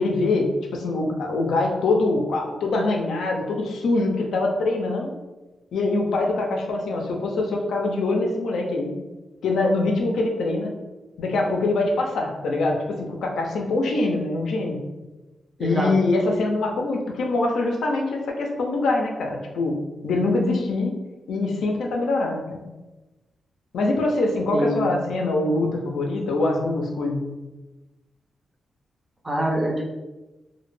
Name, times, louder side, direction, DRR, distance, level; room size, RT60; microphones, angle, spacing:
voice 1, 0.0-5.1 5.7-8.9 9.4-10.7 11.2-14.8 15.6-19.8 20.0-20.9 21.3-22.6 23.7-27.3, left 2 dB, 85° left, 1 dB, 0.4 m, -24 dB
voice 2, 15.6-15.9 24.5-24.9 29.2-29.9, right 1 dB, 25° right, -1 dB, 0.6 m, -24 dB
2.1 x 2.0 x 3.1 m, 1.1 s
cardioid pair, 75°, 0 cm